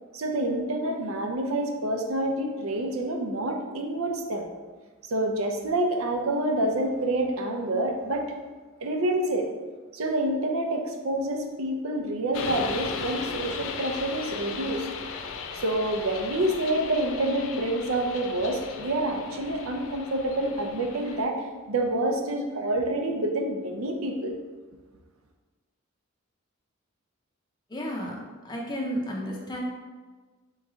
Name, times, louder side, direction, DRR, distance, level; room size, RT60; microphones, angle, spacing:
voice 1, 0.1-4.5 5.1-8.3 8.8-9.5 9.9-14.9 15.5-24.3, right 1 dB, 85° right, 3 dB, 0.6 m, -27 dB
sound 1, 12.3-21.3, left 5 dB, 70° left, 0.4 m, -37 dB
voice 2, 27.7-28.2 28.4-29.6, equal, 20° left, -3 dB, 0.5 m, -32 dB
3.8 x 3.1 x 3.6 m, 1.3 s
head